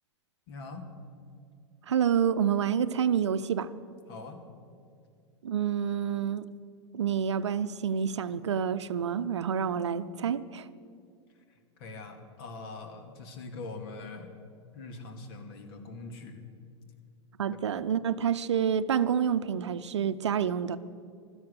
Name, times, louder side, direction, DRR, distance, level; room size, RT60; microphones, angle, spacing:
voice 1, 0.5-0.9 4.1-4.4 11.8-14.4 14.7-16.4, left 3 dB, 55° left, 7 dB, 2.2 m, -42 dB
voice 2, 1.9-3.7 5.4-6.5 6.9-10.7 17.4-20.8, right 8 dB, 70° right, 13 dB, 0.7 m, -28 dB
16.5 x 12.5 x 6.5 m, 2.4 s
figure-of-eight pair, 95°, 15 cm